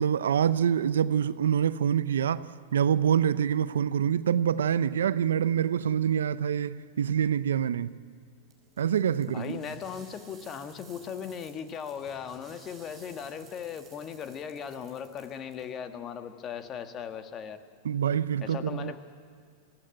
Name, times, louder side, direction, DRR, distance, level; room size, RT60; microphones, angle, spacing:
voice 1, 0.0-7.9 8.8-9.6 17.8-18.9, right 8 dB, 85° right, 0.6 m, -26 dB
sound 1, 8.5-15.7, right 5 dB, 30° right, 5.6 m, -55 dB
voice 2, 9.3-17.6 18.4-19.0, left 7 dB, 35° left, 1.6 m, -38 dB
21.5 x 15.5 x 8.9 m
hypercardioid pair, 110°, 0 cm